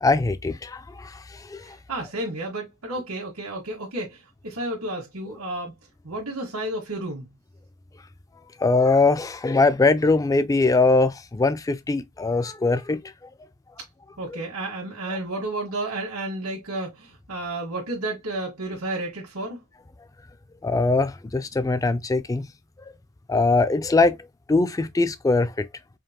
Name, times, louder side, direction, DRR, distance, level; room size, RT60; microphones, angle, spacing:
voice 1, 0.0-1.8 8.6-13.0 14.3-14.4 20.6-22.5 23.3-24.2 24.5-25.7, left 3 dB, 15° left, 0.3 m, -21 dB
voice 2, 1.9-5.7 6.0-7.2 14.2-19.6, right 2 dB, 85° right, 1.7 m, -31 dB
5.1 x 2.5 x 2.9 m
head